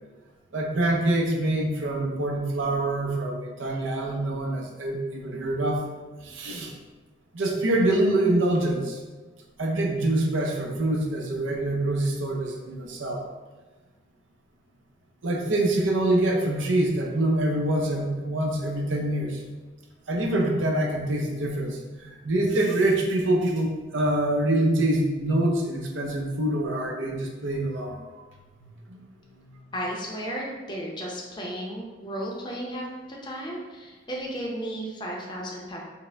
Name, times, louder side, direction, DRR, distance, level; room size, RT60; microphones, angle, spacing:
voice 1, 0.5-5.9 6.2-6.7 7.3-9.0 9.6-13.3 15.2-19.4 20.1-28.2 28.6-29.0 29.4-29.5, right 1 dB, 80° right, 1 dB, 0.6 m, -25 dB
voice 2, 29.7-35.8, equal, 25° left, -3 dB, 0.6 m, -34 dB
4.6 x 2.1 x 3.3 m, 1.3 s
head